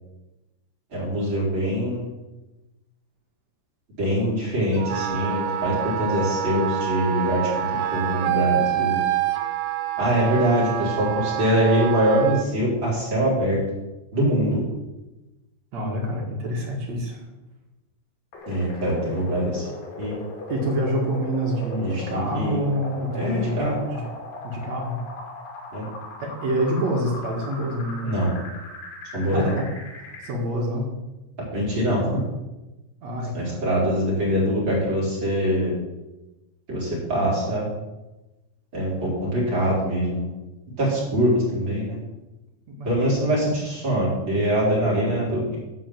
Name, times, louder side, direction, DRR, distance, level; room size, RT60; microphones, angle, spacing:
voice 1, 0.9-2.1 4.0-7.5 7.9-9.0 10.0-13.6 14.1-14.6 18.5-19.7 20.0-20.2 21.8-22.6 23.1-23.8 25.7-25.9 28.0-28.3 29.1-29.5 31.5-32.1 33.3-35.7 36.7-37.6 38.7-40.2 40.8-41.9 42.9-45.6, equal, 25° right, -6 dB, 4.1 m, -23 dB
Wind instrument woodwind instrument, 4.8-12.5, right 11 dB, 90° right, 3.3 m, -27 dB
voice 2, 15.7-17.2 20.5-24.1 24.4-25.0 26.2-28.1 29.2-29.7 30.0-30.9 33.0-33.6 42.7-43.0, equal, 55° right, -1 dB, 2.0 m, -27 dB
sound 1, 18.3-30.3, left 2 dB, 60° left, 4.2 m, -39 dB
11.5 x 5.1 x 7.6 m, 1.1 s
omnidirectional pair, 5.4 m